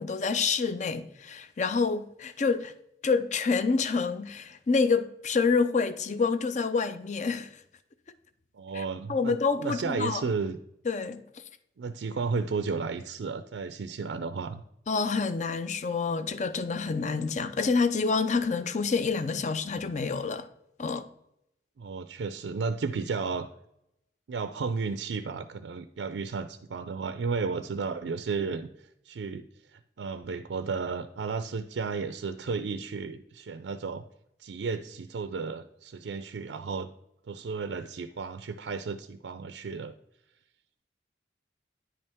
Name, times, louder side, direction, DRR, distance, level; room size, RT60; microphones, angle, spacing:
voice 1, 0.0-2.7 3.0-7.5 8.7-8.8 9.1-10.2 10.9-11.2 14.9-20.5 20.8-21.1, left 4 dB, 40° left, 0.5 m, -27 dB
voice 2, 8.5-10.6 11.8-14.6 21.8-23.5 24.3-34.0 34.4-36.9 37.3-39.9, right 4 dB, 80° right, 0.4 m, -33 dB
9.6 x 5.4 x 3.5 m
head